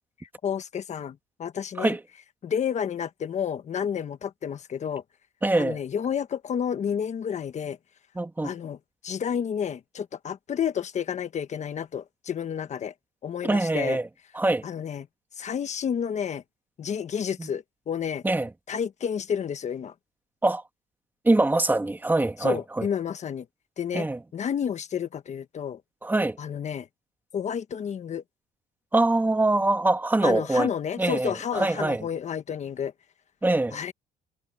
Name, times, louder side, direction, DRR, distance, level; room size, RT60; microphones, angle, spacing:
voice 1, 0.2-1.9 2.4-5.0 5.6-7.8 8.4-8.8 9.0-12.9 13.2-14.0 14.6-15.1 15.4-16.4 16.8-18.2 18.7-19.9 22.4-23.4 23.8-24.1 24.3-25.8 26.4-26.9 27.3-28.2 30.2-32.9 33.7-33.9, left 8 dB, 45° left, 1.4 m, -30 dB
voice 2, 5.4-5.8 8.2-8.5 13.4-14.1 14.3-14.6 17.4-17.5 18.2-18.5 20.4-20.6 21.2-22.9 23.9-24.2 26.0-26.4 28.9-30.7 31.0-32.1 33.4-33.8, right 2 dB, 10° right, 2.1 m, -24 dB
cardioid pair, 110°, 17 cm